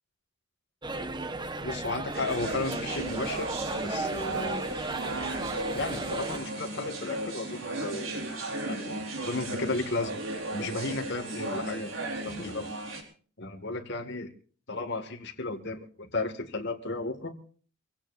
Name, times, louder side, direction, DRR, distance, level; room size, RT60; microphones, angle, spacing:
sound 1, 0.8-6.4, right 2 dB, 20° right, 1.2 m, -35 dB
voice 1, 1.6-3.5 3.8-4.7 5.7-8.1 8.6-10.2 10.5-11.9 12.2-12.8 13.4-14.3 14.7-17.3, left 3 dB, 60° left, 3 dB, 2.2 m, -34 dB
sound 2, 2.1-13.0, right 2 dB, 80° right, 4.5 m, -36 dB
25.0 x 17.0 x 2.7 m, 0.41 s
head